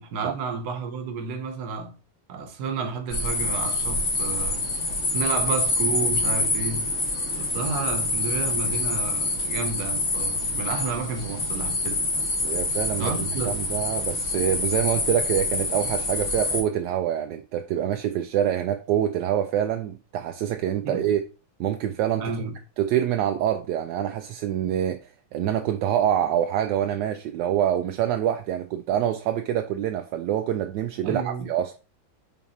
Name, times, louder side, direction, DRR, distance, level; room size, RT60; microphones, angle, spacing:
voice 1, 0.0-2.0 2.3-4.7 5.1-6.9 7.3-12.0 13.0-13.6 20.8-21.1 22.2-22.6 24.6-24.8 31.0-31.5, right 4 dB, 60° right, 1.4 m, -31 dB
sound 1, 3.1-16.6, left 2 dB, 40° left, 1.9 m, -26 dB
voice 2, 12.4-21.2 21.6-22.3 22.8-25.0 25.3-31.7, right 10 dB, 75° right, 1.1 m, -26 dB
5.7 x 4.2 x 4.2 m
omnidirectional pair, 2.2 m